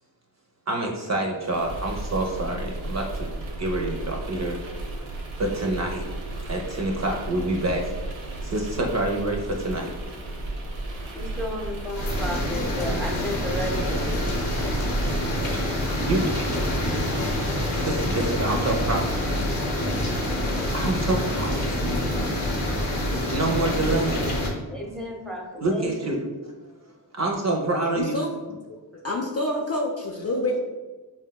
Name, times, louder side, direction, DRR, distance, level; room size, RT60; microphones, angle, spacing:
voice 1, 0.7-3.3 3.6-4.6 5.4-6.0 6.5-7.9 8.4-9.9 16.1-16.3 17.8-19.0 20.5-22.0 23.3-24.3 25.6-26.2 27.1-28.2, right 2 dB, 35° right, 0 dB, 0.5 m, -27 dB
sound 1, 1.4-18.1, right 2 dB, 90° right, 0.6 m, -34 dB
voice 2, 11.1-14.3 24.7-26.1, left 1 dB, ahead, -1 dB, 0.7 m, -33 dB
sound 2, 11.9-24.5, left 1 dB, 80° left, 0.8 m, -26 dB
voice 3, 27.9-28.3 28.9-30.6, left 1 dB, 35° left, -1 dB, 0.4 m, -27 dB
3.5 x 2.1 x 2.2 m, 1.3 s
cardioid pair, 50°, 47 cm